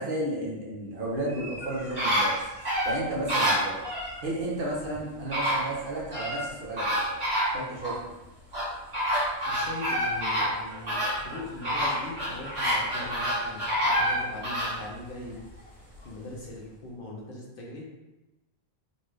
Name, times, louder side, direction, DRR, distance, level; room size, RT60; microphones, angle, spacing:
voice 1, 0.0-2.3 2.8-3.8 4.2-7.0 7.5-8.1, right 1 dB, 55° right, -4 dB, 1.0 m, -32 dB
sound 1, 1.3-4.2 4.9-5.0 5.3-6.4 6.8-8.0 8.5-14.8 15.2-15.3, equal, 75° right, 1.7 m, -28 dB
voice 2, 9.4-15.4 16.0-17.8, left 2 dB, 60° left, -3 dB, 1.0 m, -41 dB
3.9 x 2.5 x 3.2 m, 1.0 s
omnidirectional pair, 1.1 m